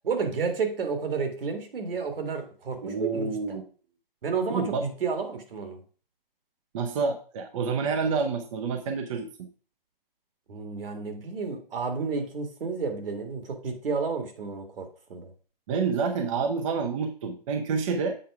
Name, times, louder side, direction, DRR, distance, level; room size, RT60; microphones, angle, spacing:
voice 1, 0.0-3.6 4.2-5.8 10.5-15.3, right 5 dB, 70° right, 6 dB, 2.1 m, -31 dB
voice 2, 2.8-3.6 4.5-4.9 6.7-9.5 15.7-18.2, right 5 dB, 35° right, 5 dB, 0.7 m, -28 dB
7.7 x 4.6 x 4.7 m, 0.40 s
hypercardioid pair, 155°, 29 cm